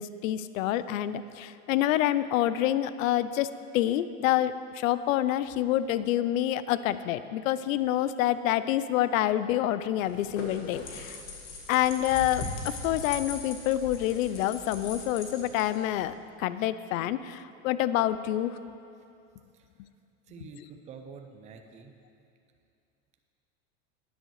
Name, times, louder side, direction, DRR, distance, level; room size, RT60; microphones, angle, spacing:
voice 1, 0.0-11.2 11.7-17.4 17.6-18.6, left 12 dB, 80° left, 14 dB, 0.5 m, -27 dB
sound 1, 10.0-16.1, left 3 dB, 50° left, 1.6 m, -39 dB
voice 2, 20.3-21.9, right 5 dB, 20° right, 4 dB, 0.5 m, -47 dB
10.0 x 9.3 x 3.2 m, 2.5 s
supercardioid pair, 135°, 40 cm